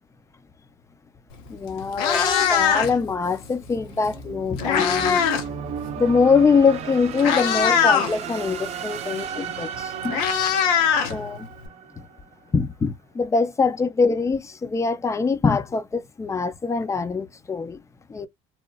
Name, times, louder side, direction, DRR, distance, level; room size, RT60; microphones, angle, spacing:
Meow, 1.3-1.5 1.8-3.1 4.2-5.5 5.8-6.1 6.8-6.9 7.2-8.1 9.4-9.5 9.8-11.7, left 7 dB, 75° left, 0.7 m, -21 dB
sound 1, 1.3-12.3, right 7 dB, 45° right, 0.6 m, -35 dB
voice 1, 1.5-5.2 6.0-10.2 11.1-11.5 11.9-12.0 12.5-17.8 18.1-18.3, left 4 dB, 20° left, 0.5 m, -23 dB
3.0 x 2.1 x 2.3 m
hypercardioid pair, 80°, 15 cm